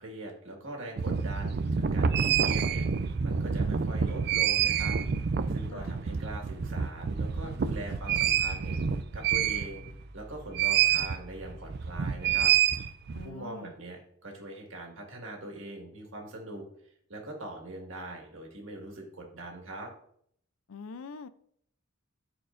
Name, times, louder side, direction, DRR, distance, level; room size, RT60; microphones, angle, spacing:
voice 1, 0.0-5.0 5.5-8.8 9.1-9.9 10.1-12.5 13.2-16.6 17.1-19.9, right 1 dB, 70° right, 1 dB, 1.8 m, -42 dB
sound 1, 1.0-10.0 10.5-11.2 11.5-13.3, right 7 dB, 50° right, 0.3 m, -27 dB
Growling, 7.4-12.4, right 1 dB, ahead, 3.0 m, -48 dB
voice 2, 13.1-13.7 20.7-21.3, left 4 dB, 80° left, 14 dB, 0.5 m, -44 dB
12.5 x 4.5 x 2.5 m, 0.67 s
head